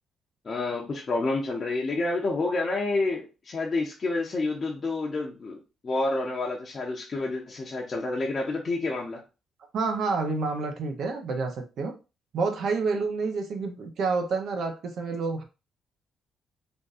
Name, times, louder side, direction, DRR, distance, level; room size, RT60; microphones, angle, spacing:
voice 1, 0.4-5.6 5.8-9.2, left 2 dB, 40° left, -2 dB, 0.8 m, -29 dB
voice 2, 9.7-11.9 12.3-15.4, right 4 dB, 65° right, 5 dB, 0.8 m, -28 dB
3.6 x 2.5 x 2.6 m, 0.30 s
cardioid pair, 90°, 0 cm